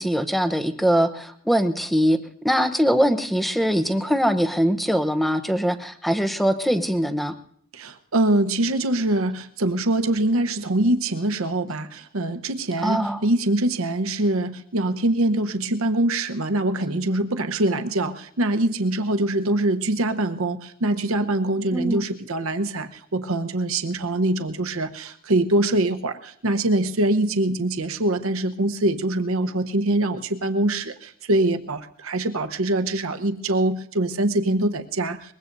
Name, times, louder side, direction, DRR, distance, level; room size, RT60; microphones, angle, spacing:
voice 1, 0.0-2.2 2.4-7.3 12.8-13.2 21.7-22.0, equal, ahead, 9 dB, 0.8 m, -22 dB
voice 2, 7.7-35.3, right 1 dB, 70° right, 7 dB, 1.0 m, -24 dB
23.0 x 21.0 x 2.7 m, 0.65 s
head